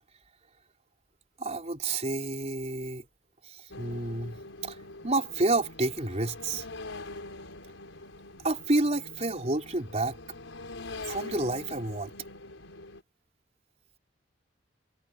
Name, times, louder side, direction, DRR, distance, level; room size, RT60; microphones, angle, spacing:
voice 1, 1.4-3.0 3.5-4.8 5.0-6.6 8.4-10.2 11.1-12.1, right 2 dB, 35° right, 4.1 m, -29 dB
sound 1, 3.7-13.0, left 2 dB, 85° left, 5.1 m, -44 dB
head